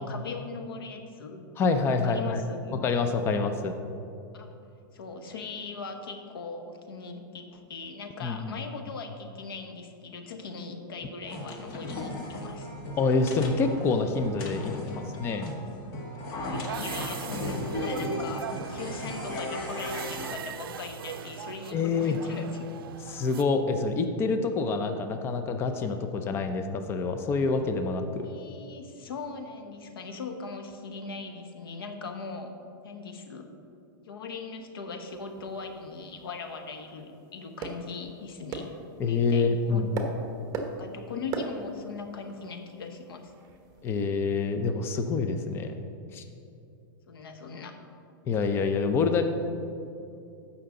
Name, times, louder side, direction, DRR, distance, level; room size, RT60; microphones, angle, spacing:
voice 1, 0.0-1.4 2.0-2.8 4.3-4.6 4.9-12.7 16.3-22.7 28.2-32.6 32.8-33.5 34.0-38.7 39.1-39.9 40.7-43.3 47.1-47.8, left 4 dB, 85° left, 6 dB, 1.1 m, -40 dB
voice 2, 1.6-2.4 2.8-3.7 8.2-8.6 13.0-15.5 21.7-22.2 23.1-28.3 39.0-40.0 43.8-45.8 46.1-46.2 48.3-49.2, left 4 dB, 20° left, 7 dB, 0.5 m, -27 dB
sound 1, 11.3-20.3, left 1 dB, 40° left, 1.3 m, -36 dB
sound 2, 16.5-23.4, right 8 dB, 85° right, 0.4 m, -39 dB
sound 3, 35.1-43.9, right 3 dB, 30° right, 1.1 m, -40 dB
14.5 x 5.7 x 3.8 m, 2.6 s
hypercardioid pair, 145°, 12 cm